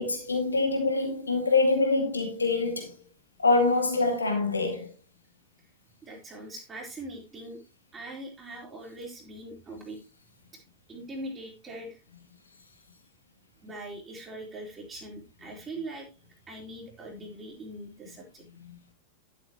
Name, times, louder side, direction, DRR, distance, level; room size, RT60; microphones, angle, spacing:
voice 1, 0.0-2.9 3.4-4.9 18.6-18.8, left 3 dB, 75° left, 2.2 m, -25 dB
voice 2, 6.0-7.6 7.9-10.0 10.9-12.0 13.6-16.1 16.5-18.4, right 1 dB, 20° right, 3.1 m, -41 dB
12.0 x 7.7 x 3.0 m
figure-of-eight pair, 90°, 0 cm